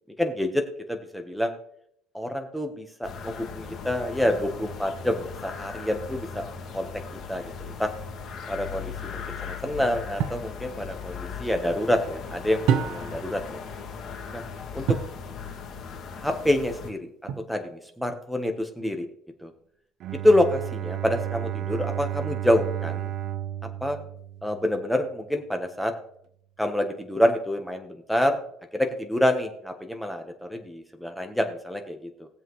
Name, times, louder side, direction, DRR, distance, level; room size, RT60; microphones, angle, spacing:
voice 1, 0.2-0.6 0.9-1.6 2.1-6.4 6.7-6.9 7.3-7.4 7.8-7.9 8.5-13.6 14.3-14.4 14.7-15.0 16.2-17.0 17.5-19.1 19.4-19.5 20.2-23.1 23.8-24.0 24.4-25.9 26.6-28.4 28.7-32.3, left 1 dB, ahead, 4 dB, 1.2 m, -27 dB
sound 1, 3.0-16.9, left 6 dB, 45° left, 2.2 m, -38 dB
sound 2, 10.2-10.5 12.7-13.3 14.9-15.2 17.3-17.8, right 8 dB, 65° right, 0.8 m, -27 dB
Bowed string instrument, 20.0-24.9, right 12 dB, 45° right, 0.4 m, -33 dB
20.0 x 7.5 x 3.2 m, 0.70 s
cardioid pair, 155°, 0 cm